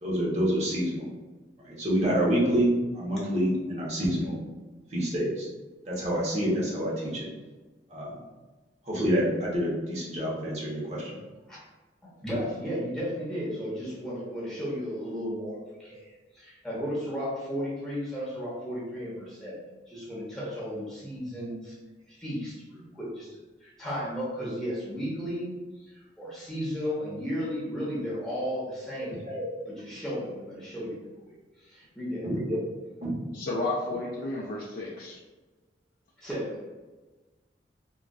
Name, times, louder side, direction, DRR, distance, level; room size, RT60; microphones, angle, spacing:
voice 1, 0.0-1.1 1.6-4.3 4.9-5.5 5.9-7.3 7.9-8.2 8.9-11.2 29.3-29.5 32.2-32.6 33.0-33.1, equal, 40° right, -5 dB, 0.9 m, -27 dB
voice 2, 12.2-19.6 19.9-21.7 22.1-25.5 25.9-29.3 29.7-31.4 31.6-32.3 36.2-36.5, equal, 5° left, -8 dB, 0.8 m, -34 dB
voice 3, 33.3-35.2, left 2 dB, 55° left, -4 dB, 0.4 m, -32 dB
3.8 x 2.3 x 2.3 m, 1.3 s
head